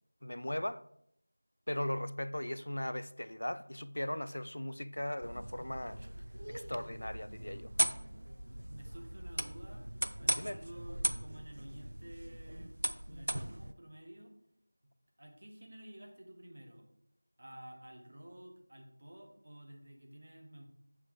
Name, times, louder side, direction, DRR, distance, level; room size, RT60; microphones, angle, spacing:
voice 1, 0.2-0.8 1.7-6.0 6.5-7.7 10.4-10.6, left 1 dB, 75° left, 0.3 m, -38 dB
sound 1, 5.2-13.7, right 1 dB, 75° right, 0.4 m, -38 dB
voice 2, 8.4-9.9 10.2-12.7 13.1-14.3 15.2-16.9 17.4-20.7, right 1 dB, 50° right, 1.3 m, -52 dB
7.1 x 4.6 x 3.6 m
figure-of-eight pair, 175°, 0 cm